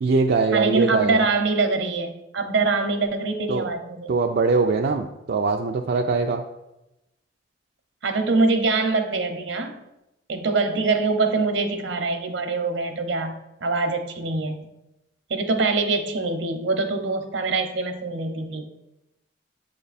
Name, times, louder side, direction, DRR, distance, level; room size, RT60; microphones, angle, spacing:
voice 1, 0.0-1.2 3.5-3.6 4.1-6.4, right 4 dB, 55° right, 2 dB, 0.4 m, -22 dB
voice 2, 0.5-4.1 8.0-9.8 10.3-13.3 13.6-14.6 15.3-18.6, right 3 dB, 75° right, 6 dB, 0.8 m, -24 dB
7.9 x 3.4 x 4.1 m, 0.91 s
head